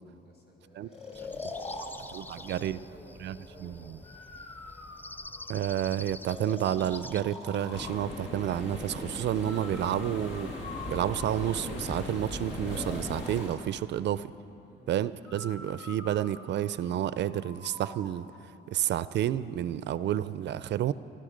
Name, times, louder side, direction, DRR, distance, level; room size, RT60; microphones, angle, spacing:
voice 1, 0.2-4.0 14.6-14.9, equal, 55° left, -2 dB, 4.4 m, -54 dB
Breathing, 0.9-2.7 4.0-5.7 6.2-8.0 9.4-11.7 12.5-13.6 15.3-18.1, left 3 dB, 30° left, 2.5 m, -44 dB
sound 1, 1.1-7.2, left 2 dB, 10° left, 0.4 m, -47 dB
voice 2, 2.1-2.8 3.2-4.0 5.5-10.5 10.9-14.3 14.9-18.3 18.7-20.9, right 11 dB, 65° right, 16 dB, 0.4 m, -30 dB
sound 2, 7.7-13.5, left 2 dB, 75° left, 2.1 m, -38 dB
21.5 x 11.5 x 5.1 m, 3.0 s
cardioid pair, 90°, 20 cm